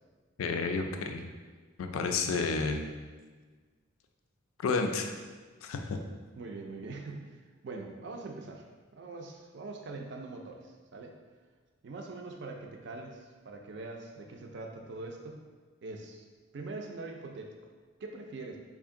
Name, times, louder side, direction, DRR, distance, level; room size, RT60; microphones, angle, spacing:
voice 1, 0.4-1.2 1.8-2.8 4.6-5.1 5.6-6.0, left 4 dB, 75° left, 5 dB, 0.4 m, -30 dB
voice 2, 6.4-7.3 7.6-11.1 11.8-15.4 15.8-16.2 16.5-17.5 18.0-18.6, right 3 dB, 55° right, 2 dB, 0.4 m, -43 dB
3.5 x 2.5 x 3.6 m, 1.4 s
head